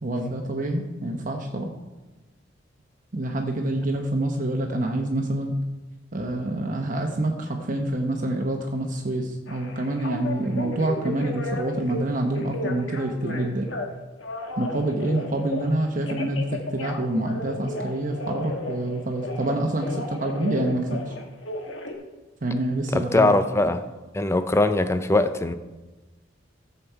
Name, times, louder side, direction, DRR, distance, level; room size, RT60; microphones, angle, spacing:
voice 1, 0.0-1.7 3.1-5.6 6.1-13.7 14.6-21.1 22.4-23.4, right 1 dB, 45° right, 2 dB, 0.9 m, -27 dB
Telephone, 9.5-12.0 12.3-13.9 14.2-15.7 16.1-19.5 19.8-21.9, left 2 dB, 90° left, 1.5 m, -34 dB
voice 2, 22.9-23.8 24.1-25.5, left 2 dB, 15° left, 11 dB, 0.5 m, -21 dB
13.5 x 7.0 x 4.6 m, 1.2 s
head